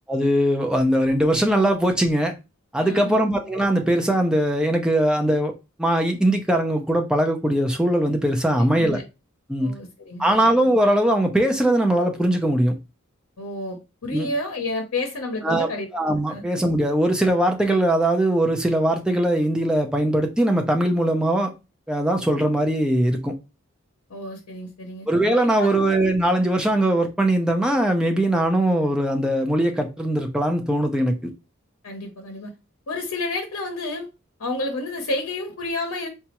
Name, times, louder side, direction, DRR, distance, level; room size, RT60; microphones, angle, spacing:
voice 1, 0.1-2.3 2.7-5.5 5.8-9.0 9.5-9.7 10.2-12.8 14.1-14.3 15.4-21.5 21.9-23.3 25.1-31.3, right 1 dB, 5° right, 0.4 m, -21 dB
voice 2, 2.8-3.2 8.5-9.0 9.6-10.4 13.4-15.9 16.3-16.5 24.1-25.1 25.4-25.9 31.8-32.5 32.9-34.1 34.4-36.1, left 2 dB, 80° left, 0.7 m, -30 dB
4.0 x 2.3 x 2.8 m
head